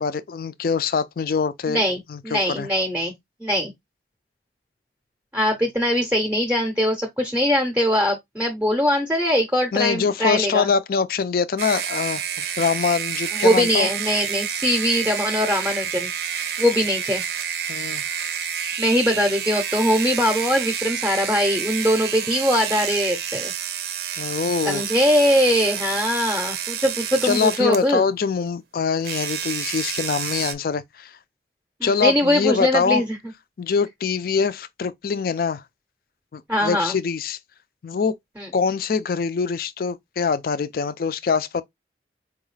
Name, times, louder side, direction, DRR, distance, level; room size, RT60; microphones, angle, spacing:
voice 1, 0.0-1.8 2.1-2.7 9.7-13.9 17.7-18.0 24.2-24.8 27.2-31.1 31.8-33.0 33.6-35.6 36.3-37.4 37.8-38.1 38.5-41.6, left 5 dB, 55° left, 0.4 m, -24 dB
voice 2, 1.7-3.1 3.4-3.7 5.3-10.7 13.3-17.2 18.8-23.5 24.6-28.1 31.8-33.2 36.5-37.0 38.4-38.5, equal, 10° right, 0.6 m, -22 dB
sound 1, 11.6-27.9 29.0-30.5, right 8 dB, 60° right, 0.5 m, -29 dB
4.5 x 2.3 x 3.2 m
head